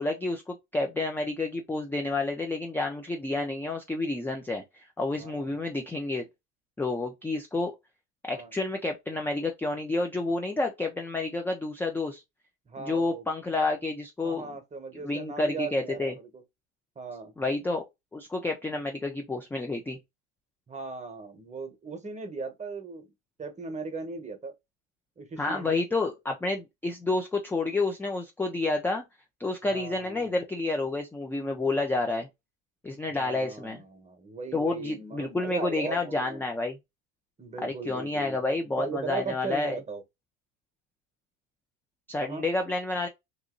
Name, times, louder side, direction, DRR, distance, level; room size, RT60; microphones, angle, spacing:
voice 1, 0.0-4.6 5.0-6.2 6.8-7.8 8.2-12.2 12.8-14.5 15.0-16.1 17.4-17.8 18.1-20.0 25.4-29.0 29.4-32.3 32.8-33.8 34.5-36.8 37.6-39.8 42.1-43.1, left 2 dB, 5° left, 0.3 m, -29 dB
voice 2, 5.2-5.5 8.3-8.5 12.7-13.2 14.2-16.4 17.0-17.3 20.7-23.1 23.4-24.5 25.2-25.7 29.7-30.2 33.1-36.4 37.4-38.4 38.8-40.0 42.2-42.4, right 4 dB, 20° right, 1.0 m, -38 dB
2.9 x 2.6 x 3.7 m
supercardioid pair, 115°, 39 cm